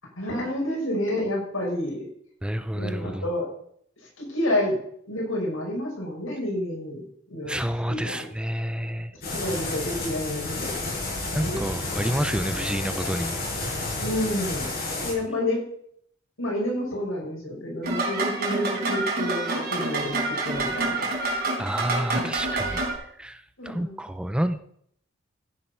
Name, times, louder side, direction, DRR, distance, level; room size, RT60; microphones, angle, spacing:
voice 1, 0.2-2.1 2.7-3.5 4.2-4.7 5.1-7.6 7.9-8.3 9.3-10.8 11.3-11.6 14.0-14.7 15.0-15.6 16.4-21.3 22.1-22.3 23.6-24.0, left 1 dB, 85° left, -1 dB, 6.1 m, -29 dB
voice 2, 2.4-3.3 7.4-9.1 11.3-13.4 21.6-24.6, equal, 5° right, 10 dB, 0.5 m, -29 dB
sound 1, 9.2-15.1, left 2 dB, 50° left, 6.5 m, -30 dB
sound 2, 17.8-22.9, right 2 dB, 50° right, 4.4 m, -27 dB
15.0 x 7.5 x 5.6 m, 0.67 s
head